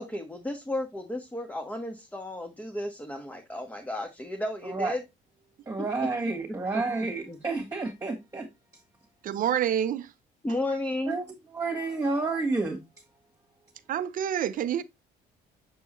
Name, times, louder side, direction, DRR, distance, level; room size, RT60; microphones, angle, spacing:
voice 1, 0.0-5.0 5.8-5.9 6.5-6.8 7.3-7.4 10.4-11.2, left 1 dB, 10° left, 1.2 m, -33 dB
voice 2, 5.7-8.5 11.1-11.2 11.5-12.8, right 3 dB, 20° right, 1.9 m, -30 dB
voice 3, 9.2-10.1 13.9-14.8, right 10 dB, 55° right, 0.7 m, -27 dB
7.3 x 4.6 x 3.1 m
cardioid pair, 110°, 17 cm